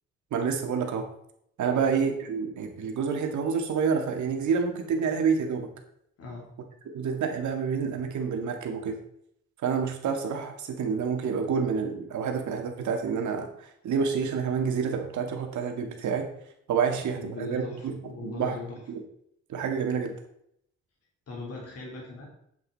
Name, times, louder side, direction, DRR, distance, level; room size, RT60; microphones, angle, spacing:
voice 1, 0.3-1.1 1.6-5.7 6.9-9.0 9.6-16.3 16.7-18.0 18.2-18.6 18.9-19.0 19.5-20.1, right 6 dB, 70° right, 4 dB, 2.0 m, -28 dB
voice 2, 17.2-18.8 21.3-22.3, left 3 dB, 55° left, -2 dB, 3.8 m, -39 dB
8.5 x 8.2 x 4.2 m, 0.71 s
cardioid pair, 90°, 30 cm